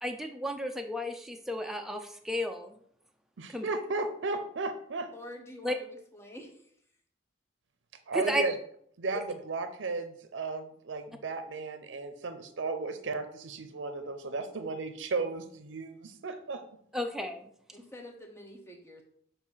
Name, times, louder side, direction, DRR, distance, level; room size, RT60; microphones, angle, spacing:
voice 1, 0.0-2.7 3.5-3.7 5.6-5.7 8.1-8.4 16.9-17.5, equal, ahead, 4 dB, 0.4 m, -33 dB
voice 2, 3.4-5.1 8.1-8.5 9.0-16.6, right 3 dB, 80° right, 9 dB, 0.5 m, -34 dB
voice 3, 5.1-6.7 17.7-19.0, left 1 dB, 15° left, 2 dB, 0.9 m, -47 dB
6.5 x 2.7 x 5.5 m, 0.67 s
head